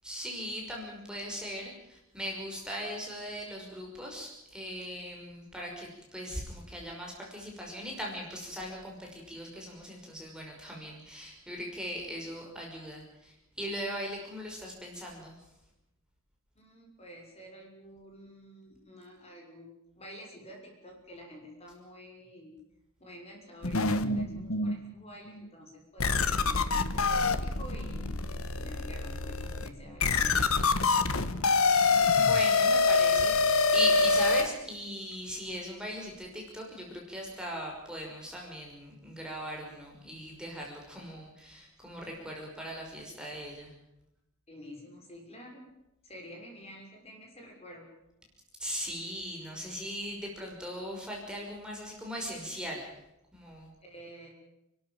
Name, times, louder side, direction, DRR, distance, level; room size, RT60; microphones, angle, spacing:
voice 1, 0.0-15.4 32.1-43.7 48.6-52.9 53.3-53.7, equal, 5° right, -2 dB, 5.7 m, -39 dB
voice 2, 16.5-22.6 23.0-28.2 28.5-31.2 44.5-45.7 46.0-47.9 53.8-54.3, equal, 30° left, 1 dB, 6.3 m, -49 dB
sound 1, 23.6-24.8 25.4-25.5 26.0-34.5, left 4 dB, 70° left, 1.4 m, -26 dB
29.5 x 13.0 x 9.1 m, 0.86 s
head